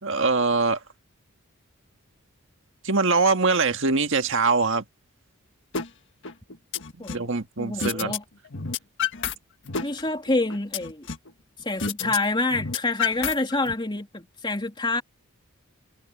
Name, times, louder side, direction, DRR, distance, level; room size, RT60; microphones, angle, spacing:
voice 1, 0.0-0.8 2.8-4.8 7.1-8.2, right 4 dB, 60° right, 1.7 m, -23 dB
sound 1, 5.7-5.9 6.2-7.3 7.8-8.2 8.5-9.3 9.7-11.3 11.8-12.2 12.5-13.7, left 6 dB, 55° left, 1.7 m, -29 dB
voice 2, 7.6-8.2 9.8-11.1 11.6-15.0, left 2 dB, 20° left, 3.2 m, -27 dB
head